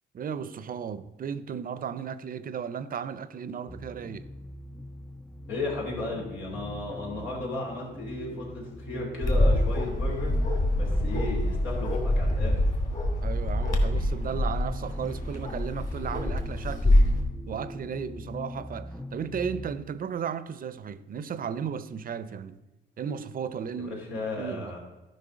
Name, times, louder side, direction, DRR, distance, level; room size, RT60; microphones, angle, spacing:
voice 1, 0.1-4.3 13.2-17.0 17.5-22.6 23.0-24.7, right 7 dB, 45° right, 0.6 m, -35 dB
sound 1, 3.7-19.8, left 1 dB, 5° left, 0.3 m, -42 dB
voice 2, 5.5-10.3 10.8-12.6 23.8-24.8, left 2 dB, 90° left, 2.8 m, -34 dB
Bark, 9.2-17.2, left 1 dB, 40° left, 2.4 m, -25 dB
12.0 x 5.3 x 5.1 m
cardioid pair, 90°, 20 cm